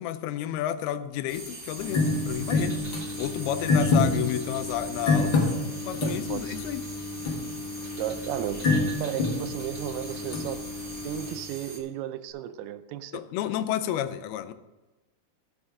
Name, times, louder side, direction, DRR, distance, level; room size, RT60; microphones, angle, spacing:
voice 1, 0.0-2.8 3.2-5.4 5.8-6.8 13.1-14.5, left 11 dB, 80° left, 11 dB, 2.6 m, -31 dB
sound 1, 1.3-11.8, right 2 dB, 55° right, 0.7 m, -43 dB
sound 2, 1.8-11.4, left 3 dB, 55° left, 1.4 m, -28 dB
voice 2, 6.0-6.6 8.0-10.7 11.0-13.2, right 12 dB, 85° right, 11 dB, 2.6 m, -34 dB
14.0 x 6.4 x 5.0 m, 1.1 s
omnidirectional pair, 4.5 m